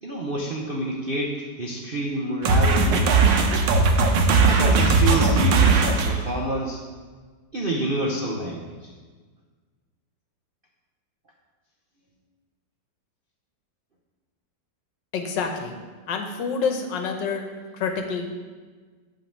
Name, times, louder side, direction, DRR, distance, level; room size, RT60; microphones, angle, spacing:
voice 1, 0.0-3.4 4.4-6.8 7.5-8.9, right 1 dB, 55° right, -2 dB, 0.6 m, -28 dB
sound 1, 2.4-6.2, right 4 dB, 85° right, 1.5 m, -18 dB
voice 2, 15.1-15.7 16.1-17.4 17.7-18.3, left 5 dB, 75° left, 5 dB, 1.6 m, -27 dB
8.9 x 3.9 x 7.2 m, 1.5 s
omnidirectional pair, 2.0 m